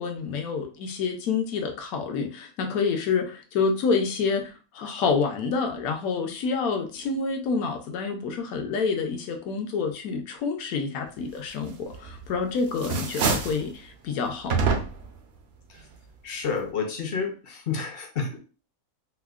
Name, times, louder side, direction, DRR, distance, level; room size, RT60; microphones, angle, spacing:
voice 1, 0.0-14.6, left 5 dB, 75° left, 4 dB, 1.1 m, -28 dB
sound 1, 11.9-12.4 12.7-13.7 14.5-15.2, right 5 dB, 65° right, 0.7 m, -26 dB
voice 2, 16.2-18.4, left 5 dB, 60° left, 4 dB, 0.6 m, -30 dB
4.5 x 2.1 x 2.3 m, 0.36 s
omnidirectional pair, 1.5 m